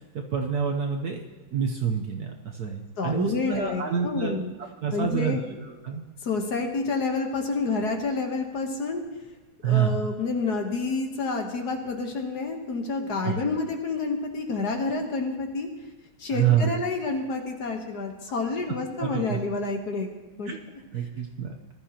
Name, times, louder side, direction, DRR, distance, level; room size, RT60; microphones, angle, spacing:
voice 1, 0.1-1.2 1.5-4.5 4.8-5.4 5.8-6.0 9.6-10.0 13.2-13.4 16.3-16.7 19.0-19.4 20.5-20.6 20.9-21.5, right 8 dB, 60° right, 2 dB, 1.2 m, -27 dB
voice 2, 3.0-4.5 4.9-5.4 6.2-9.0 9.6-15.7 16.2-20.5, left 3 dB, 55° left, 3 dB, 1.6 m, -29 dB
20.0 x 12.5 x 2.9 m, 1.2 s
omnidirectional pair, 2.3 m